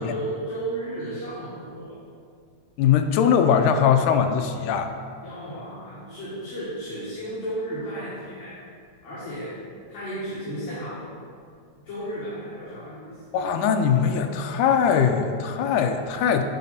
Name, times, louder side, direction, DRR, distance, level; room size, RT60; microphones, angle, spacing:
voice 1, 0.0-2.0 5.2-8.6 9.0-9.6 9.9-11.3 11.8-13.4, right 1 dB, 65° left, -11 dB, 2.9 m, -34 dB
voice 2, 2.8-4.9 13.3-16.4, left 7 dB, 85° left, 6 dB, 2.0 m, -21 dB
11.0 x 4.2 x 4.2 m, 2.2 s
omnidirectional pair, 3.6 m